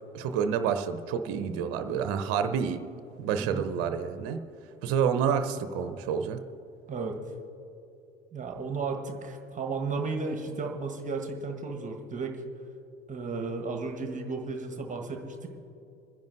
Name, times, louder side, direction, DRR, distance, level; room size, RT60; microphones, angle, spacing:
voice 1, 0.1-2.8 3.2-4.4 4.8-6.4, right 7 dB, 50° right, 9 dB, 0.8 m, -28 dB
voice 2, 6.9-7.2 8.3-12.4 13.1-15.5, right 4 dB, 25° right, 3 dB, 1.4 m, -34 dB
27.0 x 10.5 x 2.6 m, 2.8 s
figure-of-eight pair, 65°, 31 cm